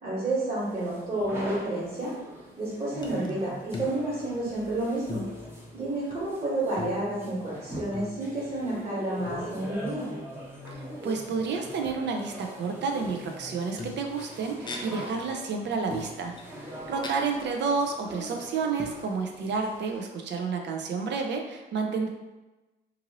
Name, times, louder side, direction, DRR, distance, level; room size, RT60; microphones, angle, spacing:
voice 1, 0.0-2.1 2.6-5.2 5.7-10.1, right 2 dB, 35° right, -11 dB, 1.4 m, -30 dB
sound 1, 0.6-20.0, equal, 10° right, 0.8 m, -42 dB
sound 2, 3.0-3.3 3.6-4.8 5.1-6.3 6.6-8.7 9.3-10.0 10.6-10.8 11.8-12.5 13.0-13.5 13.8-15.3 15.9-17.1 17.5-17.6 18.1-18.4 18.8-18.9, left 4 dB, 25° left, 0.4 m, -42 dB
voice 2, 11.0-22.1, right 5 dB, 60° right, 3 dB, 0.5 m, -30 dB
2.6 x 2.6 x 2.9 m, 1.1 s
cardioid pair, 90°, 20 cm